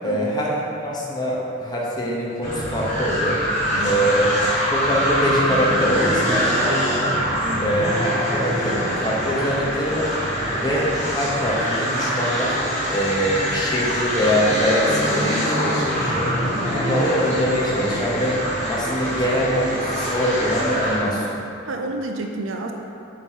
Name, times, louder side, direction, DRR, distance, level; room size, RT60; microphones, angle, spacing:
voice 1, 0.0-3.4 3.8-12.6 12.9-16.3 16.7-18.4 18.7-21.4, equal, 20° left, -5 dB, 0.9 m, -24 dB
palenie opon, 2.4-21.1, equal, 35° left, 1.5 m, -24 dB
voice 2, 7.4-7.8 21.6-22.7, right 2 dB, 65° right, 2 dB, 0.5 m, -30 dB
7.5 x 3.0 x 4.5 m, 2.6 s
head